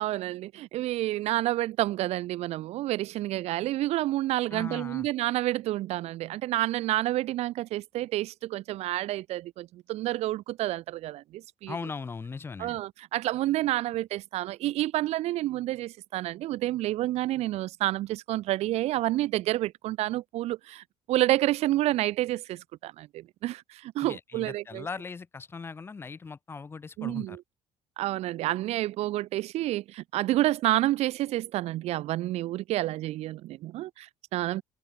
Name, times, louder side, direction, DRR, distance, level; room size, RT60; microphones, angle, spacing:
voice 1, 0.0-11.8 12.6-24.9 27.0-27.4 28.0-34.6, right 15 dB, 70° right, 2.5 m, -29 dB
voice 2, 4.5-5.1 11.7-12.8 24.0-27.4, left 4 dB, 20° left, 5.6 m, -39 dB
cardioid pair, 170°, 11 cm